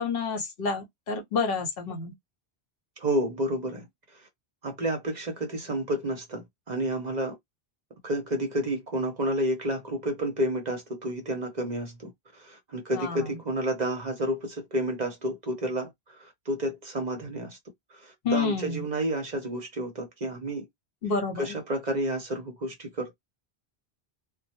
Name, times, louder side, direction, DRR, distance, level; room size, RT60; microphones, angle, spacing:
voice 1, 0.0-2.1 12.9-13.3 18.2-18.8 21.0-21.5, left 4 dB, 65° left, 0.9 m, -29 dB
voice 2, 3.0-3.9 4.1-4.3 4.6-7.4 8.0-17.6 17.9-20.7 21.4-23.1, right 1 dB, 50° right, 0.7 m, -30 dB
2.1 x 2.1 x 2.8 m
omnidirectional pair, 1.1 m